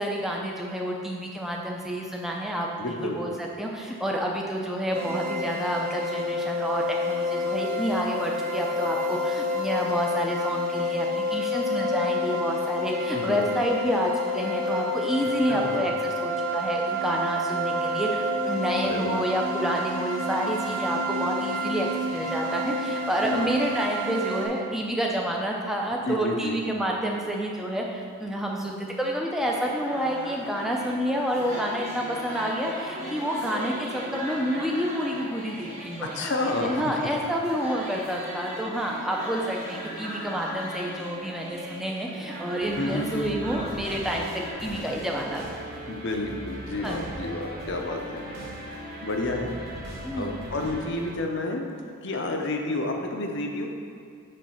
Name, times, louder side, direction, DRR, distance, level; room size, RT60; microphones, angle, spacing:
voice 1, 0.0-45.4 46.8-47.1 50.0-50.4, equal, ahead, -2 dB, 0.6 m, -29 dB
voice 2, 2.8-3.2 13.1-13.5 15.5-15.9 18.8-19.2 23.2-23.5 26.1-26.6 36.1-37.0 42.8-43.3 45.8-48.2 48.7-49.5 50.1-51.7 52.0-53.7, left 2 dB, 50° left, 3 dB, 0.7 m, -30 dB
sound 1, 4.9-24.5, left 1 dB, 70° right, 1.1 m, -29 dB
sound 2, 29.4-44.5, equal, 30° right, 1.4 m, -38 dB
sound 3, 42.6-51.1, right 1 dB, 45° right, 1.3 m, -39 dB
7.5 x 3.3 x 5.6 m, 2.4 s
head